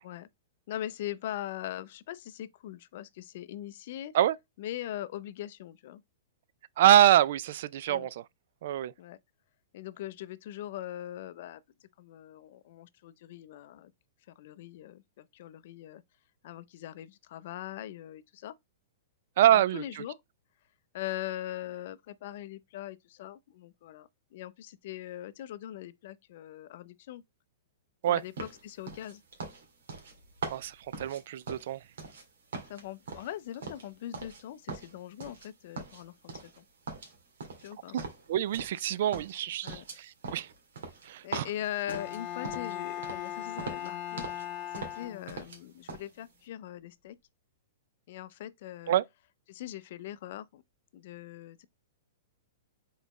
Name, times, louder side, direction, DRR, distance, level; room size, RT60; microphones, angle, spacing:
voice 1, 0.7-4.1 4.6-6.0 7.9-8.1 9.0-9.2 9.7-11.6 12.0-13.9 14.4-16.0 16.4-18.5 19.5-20.2 20.9-27.2 28.1-29.2 32.6-36.6 37.6-38.0 39.6-39.8 41.2-44.2 44.7-47.2 48.1-48.9 49.5-50.6 50.9-51.7, left 12 dB, 50° left, 0.5 m, -41 dB
voice 2, 6.8-8.1 8.6-8.9 19.4-19.8 28.0-28.2 30.5-31.8 37.9-38.0 38.3-39.8 40.3-40.5 41.1-41.4 48.9-49.0, right 12 dB, 55° right, 0.3 m, -25 dB
sound 1, 28.4-32.2 32.5-34.4 34.7-35.5 35.8-36.6 36.9-38.9 39.1-42.8 43.0-43.3 43.6-44.5 44.7-45.6 45.9-46.1, right 4 dB, 80° right, 1.8 m, -41 dB
Bowed string instrument, 41.9-45.6, left 11 dB, 30° left, 0.9 m, -38 dB
4.1 x 4.0 x 3.0 m
hypercardioid pair, 160°, 0 cm